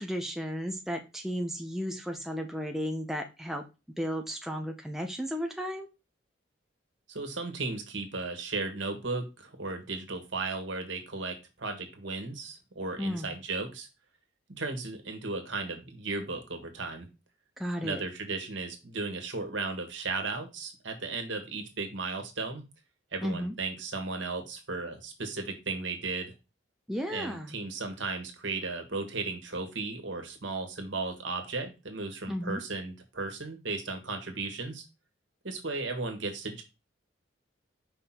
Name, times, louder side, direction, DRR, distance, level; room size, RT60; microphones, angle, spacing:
voice 1, 0.0-3.6 4.0-5.9 13.0-13.3 17.6-18.0 23.2-23.5 26.9-27.6 32.3-32.6, equal, ahead, 3 dB, 0.6 m, -34 dB
voice 2, 7.1-13.9 14.6-17.1 17.8-22.6 23.1-26.3 27.1-34.8 35.4-36.6, right 3 dB, 75° right, 5 dB, 1.6 m, -35 dB
5.4 x 3.7 x 5.8 m, 0.27 s
head